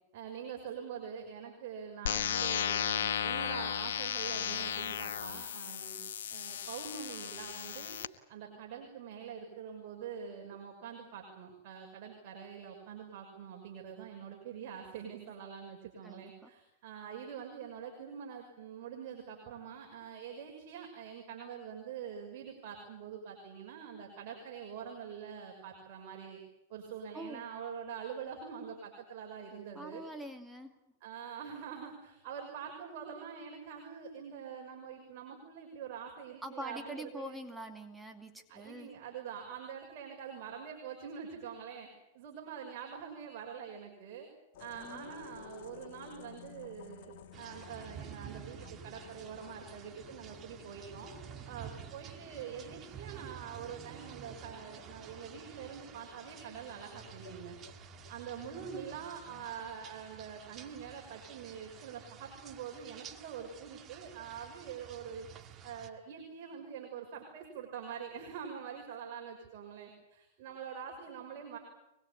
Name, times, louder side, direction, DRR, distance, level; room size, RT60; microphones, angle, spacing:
voice 1, 0.1-6.0 6.3-8.0 8.3-26.4 26.7-30.0 31.0-37.4 38.5-41.9 42.1-44.3 44.6-51.1 51.5-57.6 58.1-65.3 65.6-71.6, right 7 dB, 55° right, 1 dB, 6.1 m, -45 dB
sound 1, 2.1-8.1, left 9 dB, 70° left, 1.4 m, -35 dB
voice 2, 16.0-16.5 27.1-27.4 29.7-30.7 36.4-38.9 44.8-45.1 58.4-58.7, equal, 5° right, 4 dB, 2.4 m, -45 dB
sound 2, 44.5-59.5, left 10 dB, 55° left, 2.6 m, -55 dB
sound 3, 47.3-65.9, right 9 dB, 30° right, 1.9 m, -51 dB
25.0 x 21.0 x 8.6 m, 0.89 s
hypercardioid pair, 110°, 0 cm